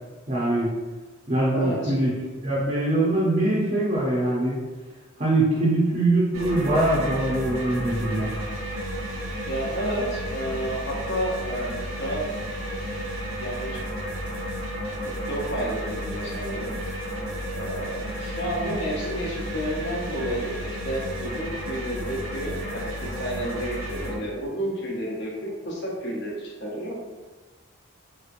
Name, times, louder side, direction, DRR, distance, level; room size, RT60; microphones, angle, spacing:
voice 1, 0.3-0.7 1.3-4.6 5.2-8.3, right 1 dB, 35° right, -7 dB, 0.6 m, -23 dB
voice 2, 1.5-1.9 9.5-12.3 12.7-13.1 13.4-13.8 15.3-16.8 17.5-22.9 23.2-27.0, equal, 55° left, -3 dB, 0.8 m, -31 dB
sound 1, 6.3-24.2, equal, 70° right, 0.8 m, -32 dB
3.5 x 2.8 x 2.5 m, 1.3 s
head